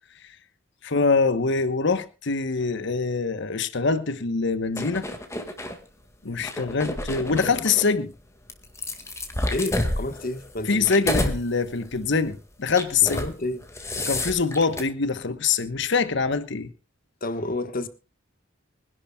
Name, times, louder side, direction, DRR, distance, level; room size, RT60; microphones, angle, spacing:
voice 1, 0.8-5.1 6.2-8.1 10.7-13.2 14.0-16.7, left 4 dB, 60° left, 1.1 m, -24 dB
sound 1, 4.8-5.8 6.3-7.9 8.5-11.4 11.8-12.1 12.7-13.3 13.6-14.8, left 1 dB, 15° left, 1.9 m, -29 dB
voice 2, 9.5-10.9 13.1-13.7 17.2-17.9, left 2 dB, 45° left, 1.4 m, -30 dB
24.5 x 11.5 x 2.3 m
head